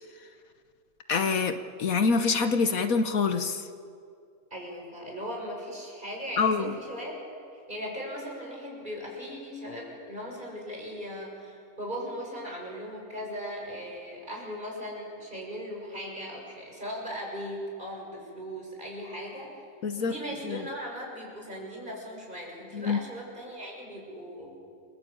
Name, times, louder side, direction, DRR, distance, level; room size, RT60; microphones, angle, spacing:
voice 1, 1.1-3.7 6.4-6.7 19.8-20.1 20.4-20.6 22.7-23.0, left 4 dB, 70° left, 8 dB, 1.5 m, -26 dB
voice 2, 4.5-7.2 7.5-19.6 20.0-24.6, equal, 30° right, -1 dB, 7.0 m, -38 dB
29.0 x 22.5 x 8.8 m, 2.4 s
omnidirectional pair, 1.6 m